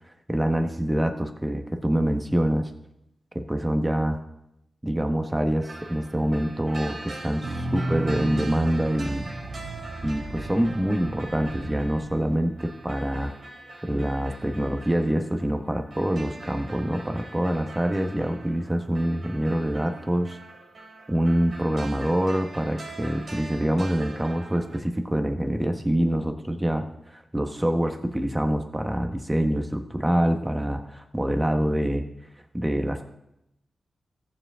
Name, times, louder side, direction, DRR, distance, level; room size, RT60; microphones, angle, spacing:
voice 1, 0.3-2.7 3.3-4.2 4.8-9.3 10.0-13.3 13.8-20.4 21.1-26.8 27.1-32.0 32.5-33.1, right 1 dB, 15° right, 5 dB, 1.5 m, -25 dB
sound 1, 5.6-24.8, right 2 dB, 65° right, 3.4 m, -43 dB
sound 2, 7.4-12.3, right 2 dB, 85° right, 2.1 m, -34 dB
15.0 x 7.3 x 3.8 m, 0.83 s
cardioid pair, 50°, 0 cm